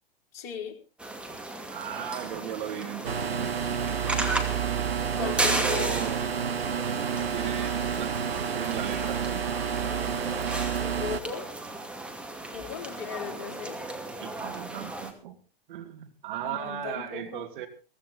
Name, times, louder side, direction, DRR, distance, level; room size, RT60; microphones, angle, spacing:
voice 1, 0.3-0.8 5.1-5.9 10.7-11.5 12.5-13.8 16.4-17.4, left 7 dB, 45° left, 3 dB, 3.7 m, -37 dB
sound 1, 1.0-15.1, right 2 dB, 5° right, 2.4 m, -35 dB
voice 2, 1.7-3.4 5.0-6.2 6.8-8.2 8.5-9.4 14.2-15.4 15.7-17.7, right 10 dB, 60° right, 7 dB, 2.2 m, -37 dB
sound 2, 3.0-11.2, right 7 dB, 90° right, 0.8 m, -29 dB
16.0 x 15.5 x 4.0 m, 0.35 s
hypercardioid pair, 105°, 29 cm